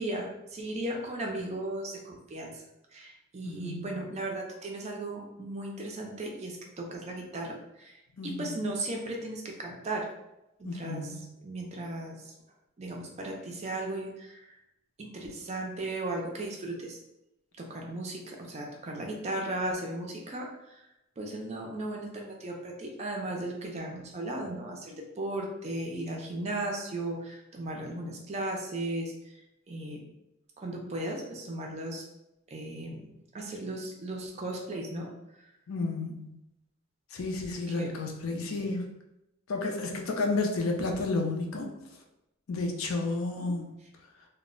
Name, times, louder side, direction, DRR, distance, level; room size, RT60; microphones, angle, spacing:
voice 1, 0.0-2.6 2.9-10.1 10.6-11.2 11.4-12.3 12.8-14.6 15.0-17.0 17.6-20.8 21.2-29.1 29.7-30.1 30.6-32.0 32.5-33.1 33.3-35.1 37.7-37.9, right 1 dB, 30° right, 0 dB, 0.4 m, -36 dB
voice 2, 3.4-3.9 8.2-8.7 10.6-11.3 35.7-36.3 37.1-38.9 39.5-41.7 42.5-43.8, left 3 dB, 70° left, 2 dB, 0.5 m, -32 dB
2.0 x 2.0 x 3.6 m, 0.91 s
head